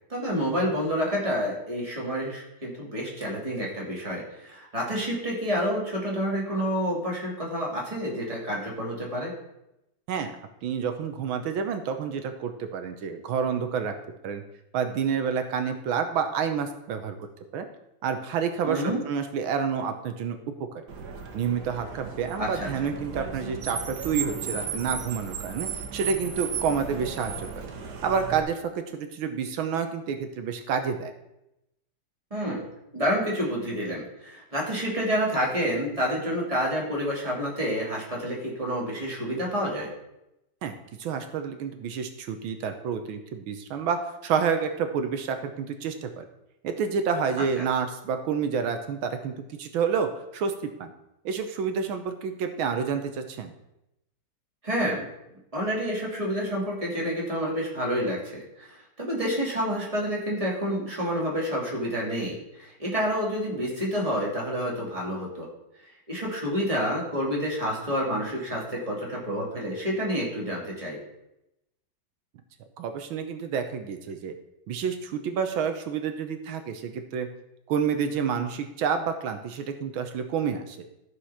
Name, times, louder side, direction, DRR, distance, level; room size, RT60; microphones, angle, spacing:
voice 1, 0.1-9.3 18.6-19.0 22.4-22.7 32.3-32.6 32.9-39.9 54.6-55.1 55.5-65.5 66.1-71.0, equal, 15° right, -3 dB, 2.5 m, -29 dB
voice 2, 10.6-13.9 14.2-14.4 14.7-17.3 17.5-17.7 18.0-20.4 21.3-27.7 28.0-31.1 40.6-46.2 46.6-49.3 49.6-50.9 51.2-53.5 72.8-74.3 74.7-77.3 77.7-80.8, right 6 dB, 85° right, 7 dB, 1.6 m, -29 dB
Car, 20.9-28.4, right 6 dB, 60° right, 1.6 m, -35 dB
13.5 x 4.9 x 5.7 m, 0.88 s
omnidirectional pair, 2.2 m